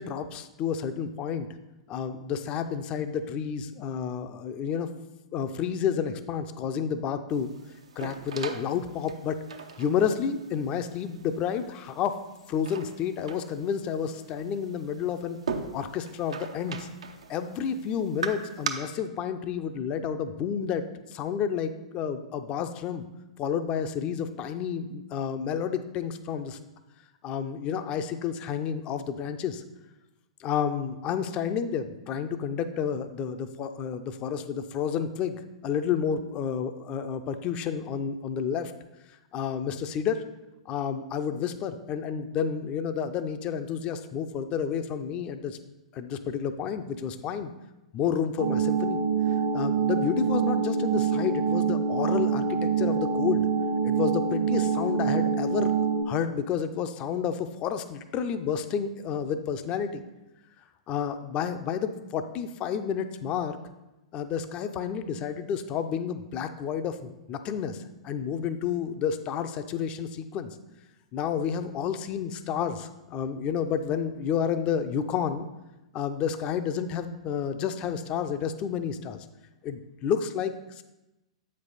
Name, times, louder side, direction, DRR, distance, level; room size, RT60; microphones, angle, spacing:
voice 1, 0.0-1.5 1.9-4.9 5.3-7.5 8.0-9.4 9.8-12.2 12.5-15.4 15.7-16.9 17.3-20.8 21.1-23.0 23.4-26.6 27.2-29.6 30.4-38.7 39.3-40.2 40.7-45.6 45.9-47.5 47.9-49.0 49.5-53.5 53.8-55.7 56.0-60.0 60.9-63.6 64.1-70.6 71.1-75.5 75.9-79.3 79.6-80.8, left 7 dB, 30° left, 9 dB, 0.5 m, -30 dB
sound 1, 7.3-18.7, right 6 dB, 70° right, 0.6 m, -40 dB
sound 2, 48.4-56.0, right 6 dB, 50° right, 0.9 m, -25 dB
8.1 x 5.3 x 4.0 m, 0.98 s
figure-of-eight pair, 105°, 3 cm